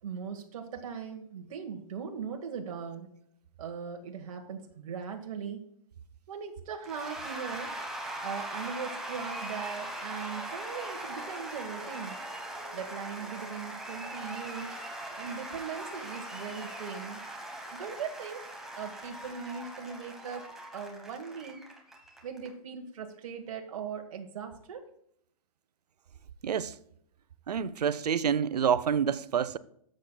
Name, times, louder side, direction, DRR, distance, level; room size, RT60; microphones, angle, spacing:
voice 1, 0.0-3.1 3.6-5.7 6.3-7.7 8.2-12.2 12.7-14.8 15.1-17.2 17.7-18.5 18.8-21.6 22.2-24.8, right 6 dB, 55° right, 1.3 m, -39 dB
Cheering / Applause / Crowd, 6.8-22.5, right 1 dB, ahead, 1.0 m, -40 dB
voice 2, 26.4-26.7 27.5-29.6, right 8 dB, 85° right, 0.6 m, -27 dB
13.0 x 7.5 x 2.2 m
hypercardioid pair, 155°, 20 cm